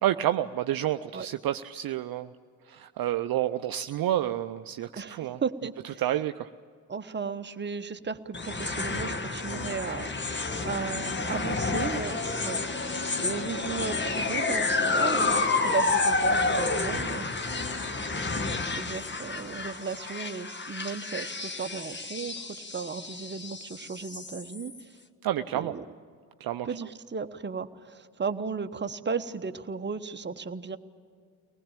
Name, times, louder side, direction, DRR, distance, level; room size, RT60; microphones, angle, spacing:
voice 1, 0.0-2.3 2.7-5.4 6.0-6.5 25.2-25.7 26.4-26.7, right 12 dB, 50° right, 9 dB, 0.7 m, -29 dB
voice 2, 5.0-6.0 6.9-12.6 12.8-17.4 18.6-24.9 25.5-25.8 26.6-30.8, right 5 dB, 25° right, 9 dB, 1.1 m, -35 dB
sound 1, 8.3-24.8, left 3 dB, 25° left, 1.4 m, -30 dB
23.5 x 19.5 x 9.0 m, 2.1 s
hypercardioid pair, 45°, 45 cm